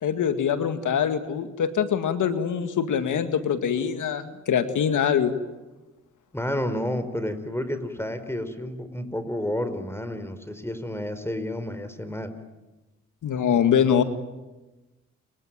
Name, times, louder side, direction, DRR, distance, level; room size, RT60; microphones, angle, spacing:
voice 1, 0.0-5.3 13.2-14.0, left 8 dB, 70° left, 9 dB, 2.0 m, -23 dB
voice 2, 6.3-12.3, left 1 dB, 10° left, 10 dB, 4.6 m, -30 dB
30.0 x 22.0 x 9.1 m, 1.1 s
supercardioid pair, 50°, 31 cm